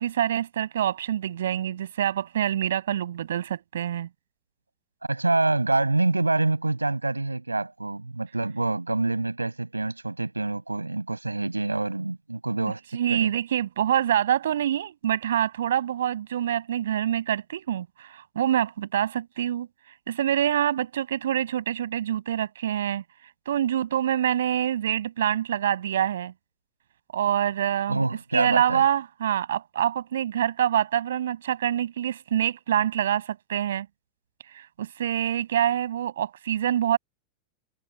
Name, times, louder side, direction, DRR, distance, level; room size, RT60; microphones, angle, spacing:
voice 1, 0.0-4.1 12.9-19.7 20.1-23.0 23.5-26.3 27.1-28.0 28.3-33.9 34.5-37.0, right 10 dB, 60° right, 7.1 m, -26 dB
voice 2, 5.1-12.8 13.1-13.3 27.9-28.9, right 2 dB, 80° right, 6.8 m, -26 dB
figure-of-eight pair, 90°, 0 cm